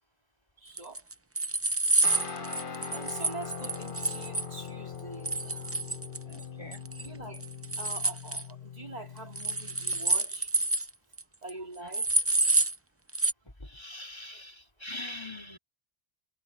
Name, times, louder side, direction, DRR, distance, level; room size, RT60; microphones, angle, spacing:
voice 1, 0.6-1.1 2.1-2.5 2.9-5.8 7.0-7.5 7.8-10.5 11.4-12.2, right 2 dB, 40° right, 2.8 m, -45 dB
sound 1, 0.8-4.5 5.3-6.4 6.7-7.1 7.3-8.4 9.4-10.9 11.2-11.3 11.5-11.6 11.9-12.8 13.1-13.3, right 2 dB, 15° right, 0.6 m, -28 dB
Guitar, 2.0-10.2, left 6 dB, 50° left, 1.6 m, -41 dB
voice 2, 6.2-6.8 11.8-11.9 13.6-15.6, left 1 dB, 25° left, 3.1 m, -42 dB
omnidirectional pair, 1.1 m